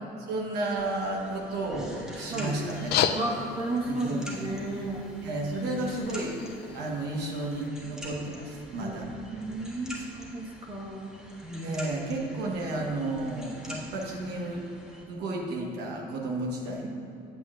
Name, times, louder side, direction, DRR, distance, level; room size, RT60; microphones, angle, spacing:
voice 1, 0.3-3.1 3.9-4.4 5.2-6.3 6.7-9.1 11.6-14.6 15.1-16.9, right 2 dB, 80° right, -1 dB, 1.2 m, -32 dB
sound 1, 0.8-15.0, equal, 5° right, 1.4 m, -46 dB
sound 2, 2.7-7.7, left 9 dB, 70° left, 0.4 m, -34 dB
voice 2, 3.1-5.1 5.5-6.0 8.8-9.0 9.3-11.1 11.4-11.8 16.8-16.9, right 2 dB, 30° right, -3 dB, 1.4 m, -33 dB
8.3 x 8.1 x 2.5 m, 2.8 s
cardioid pair, 110°, 17 cm